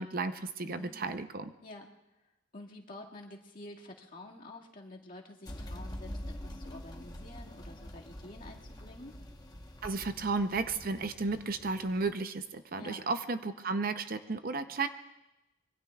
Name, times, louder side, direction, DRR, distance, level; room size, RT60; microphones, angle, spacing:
voice 1, 0.0-1.5 9.8-14.9, right 3 dB, 45° right, 9 dB, 0.7 m, -33 dB
voice 2, 0.6-1.0 1.6-1.9 2.5-6.1 6.4-9.1 12.8-13.0, left 1 dB, 45° left, -2 dB, 2.0 m, -49 dB
sound 1, 5.4-12.1, left 1 dB, 20° left, 1.0 m, -45 dB
25.5 x 23.0 x 2.4 m, 0.97 s
head